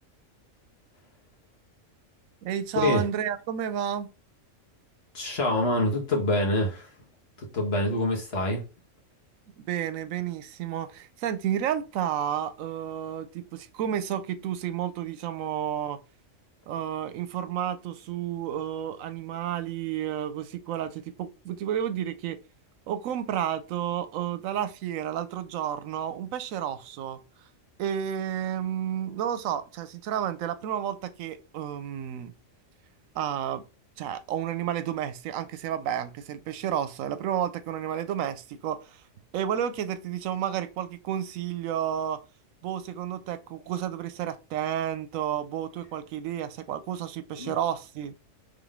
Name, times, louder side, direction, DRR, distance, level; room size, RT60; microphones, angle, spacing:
voice 1, 2.4-4.1 9.6-16.0 16.7-22.4 22.9-27.2 27.8-32.3 33.1-33.6 34.0-39.0 39.3-42.2 42.6-48.1, right 10 dB, 85° right, 1.0 m, -31 dB
voice 2, 5.1-6.9 7.5-8.6 47.4-47.6, left 1 dB, 50° left, 1.5 m, -25 dB
3.7 x 3.5 x 3.5 m
omnidirectional pair, 1.4 m